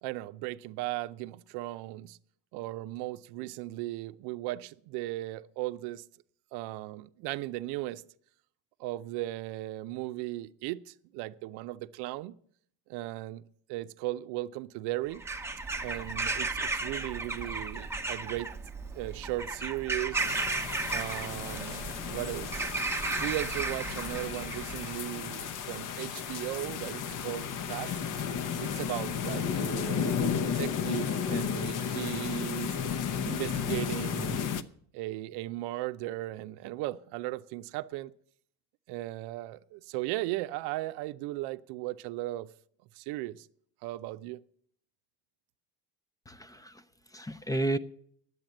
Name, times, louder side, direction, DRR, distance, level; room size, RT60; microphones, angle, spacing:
voice 1, 0.0-2.2 2.5-6.0 6.5-8.0 8.8-12.4 12.9-13.4 13.7-15.2 15.8-18.5 18.9-20.3 20.9-22.7 23.2-27.9 28.6-32.8 33.2-34.4 34.9-38.1 38.9-42.5 42.9-43.5 43.8-44.4, right 17 dB, 90° right, 0.6 m, -37 dB
Bird vocalization bird call bird song / Crow, 15.1-25.0, right 3 dB, 5° right, 0.8 m, -34 dB
sound 1, 20.2-34.6, left 7 dB, 55° left, 0.8 m, -33 dB
voice 2, 46.3-47.8, right 2 dB, 10° left, 0.4 m, -33 dB
10.5 x 8.1 x 8.8 m
cardioid pair, 125°, 38 cm